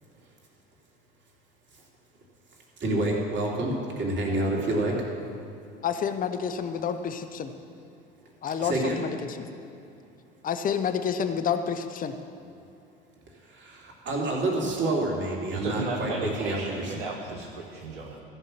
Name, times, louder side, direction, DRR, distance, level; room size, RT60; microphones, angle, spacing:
voice 1, 2.8-4.9 8.6-9.0 13.6-16.9, right 2 dB, 40° right, -2 dB, 2.7 m, -28 dB
voice 2, 5.8-7.5 8.4-9.5 10.4-12.2, left 7 dB, 30° left, 9 dB, 0.8 m, -29 dB
voice 3, 15.5-18.2, right 3 dB, 85° right, -1 dB, 1.1 m, -34 dB
14.5 x 5.6 x 7.3 m, 2.7 s
hypercardioid pair, 75°, 29 cm